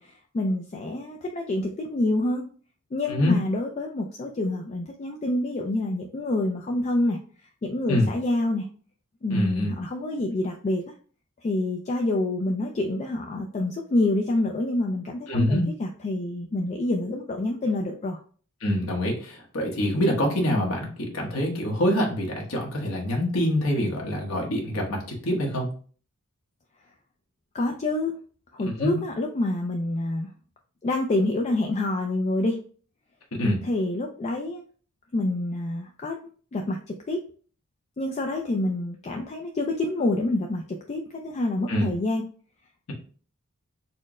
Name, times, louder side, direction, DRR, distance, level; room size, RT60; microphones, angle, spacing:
voice 1, 0.0-2.4 2.9-7.2 7.6-8.7 9.2-10.8 11.4-18.2 27.5-28.1 28.5-30.3 30.8-32.6 33.6-34.6 35.1-36.2 36.5-37.2 38.0-42.2, left 2 dB, 30° left, 2 dB, 0.3 m, -27 dB
voice 2, 9.3-9.7 15.3-15.7 18.6-25.7 28.8-28.9 33.3-33.6 41.7-41.9, left 1 dB, 65° left, -1 dB, 1.1 m, -25 dB
4.3 x 2.0 x 3.6 m, 0.43 s
head